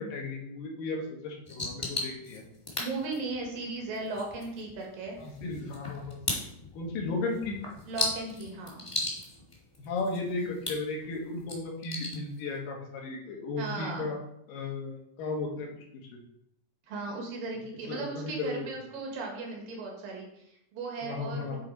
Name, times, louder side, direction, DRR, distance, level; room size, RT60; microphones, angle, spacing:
voice 1, 0.0-2.4 5.2-6.5 6.7-7.6 9.8-14.2 14.5-15.7 15.9-16.0 17.9-18.7 21.0-21.6, left 3 dB, 85° left, 0 dB, 3.0 m, -35 dB
sound 1, 1.4-12.6, left 1 dB, 20° left, 0.9 m, -38 dB
voice 2, 2.8-5.2 7.9-8.8 13.6-14.1 16.9-21.6, right 3 dB, 85° right, 0 dB, 3.3 m, -37 dB
9.3 x 3.9 x 4.7 m, 0.77 s
omnidirectional pair, 3.8 m